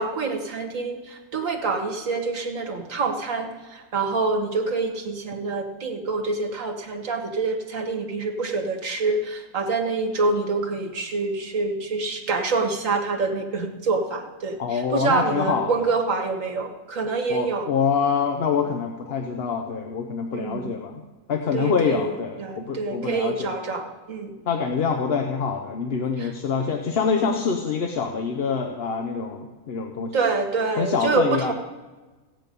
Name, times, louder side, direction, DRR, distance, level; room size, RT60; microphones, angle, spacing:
voice 1, 0.0-17.7 20.3-20.8 21.5-24.3 26.2-26.3 30.1-31.5, right 3 dB, 65° right, 3 dB, 1.9 m, -26 dB
voice 2, 14.6-15.9 17.3-21.0 21.3-23.5 24.5-30.1 30.8-31.5, left 5 dB, 50° left, 4 dB, 0.9 m, -25 dB
15.5 x 9.0 x 5.3 m, 1.2 s
omnidirectional pair, 1.5 m